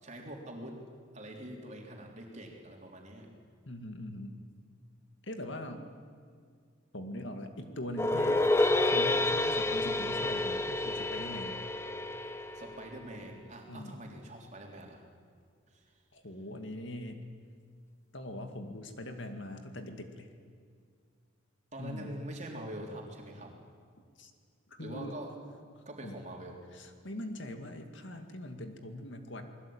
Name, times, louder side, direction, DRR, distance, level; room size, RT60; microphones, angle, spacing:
voice 1, 0.0-0.8 1.1-3.3 12.5-15.0 15.7-15.8 21.7-23.5 24.8-25.3 25.9-26.6, right 1 dB, 35° right, 0 dB, 3.7 m, -44 dB
voice 2, 3.7-4.4 5.2-5.8 6.9-11.6 13.7-14.0 16.1-17.2 18.1-20.3 21.8-22.1 24.2-24.3 24.7-25.2 26.0-26.2 26.7-29.4, left 1 dB, 60° left, 6 dB, 2.2 m, -42 dB
sound 1, 8.0-13.2, left 2 dB, 10° left, 0.9 m, -29 dB
28.5 x 21.0 x 8.8 m, 2.1 s
head